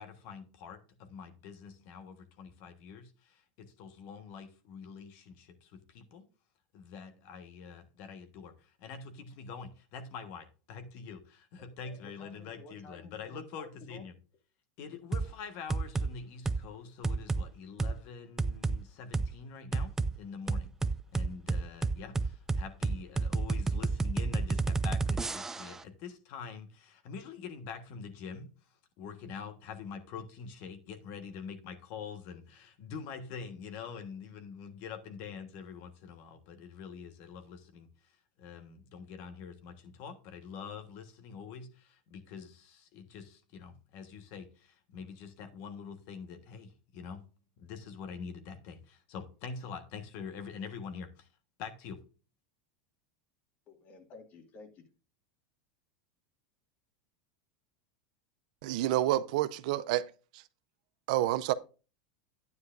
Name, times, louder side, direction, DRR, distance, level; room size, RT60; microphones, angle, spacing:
voice 1, 0.0-6.3 6.7-14.1 14.8-20.7 21.1-28.5 29.0-37.9 38.4-47.3 47.6-51.3 51.6-52.0, left 6 dB, 55° left, 1.3 m, -45 dB
voice 2, 11.8-14.0 53.7-54.8, left 3 dB, 40° left, 2.0 m, -52 dB
sound 1, 15.1-15.3 15.7-16.1 16.4-16.6 17.0-17.4 17.8-17.9 18.4-18.8 19.1-19.3 19.7-20.1 20.5-25.8, right 3 dB, 10° right, 0.4 m, -30 dB
voice 3, 58.6-60.0 61.1-61.5, right 14 dB, 70° right, 0.5 m, -28 dB
9.6 x 9.5 x 2.5 m
supercardioid pair, 130°, 4 cm